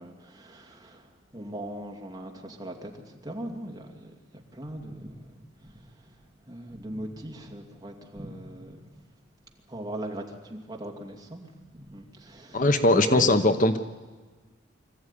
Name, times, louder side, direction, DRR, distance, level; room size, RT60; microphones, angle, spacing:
voice 1, 0.0-5.3 5.6-5.9 6.5-8.9 9.7-11.5 11.7-13.3, right 1 dB, 20° right, 2 dB, 2.6 m, -39 dB
voice 2, 12.5-13.8, left 2 dB, 45° left, 10 dB, 0.9 m, -20 dB
25.0 x 14.5 x 9.9 m, 1.3 s
head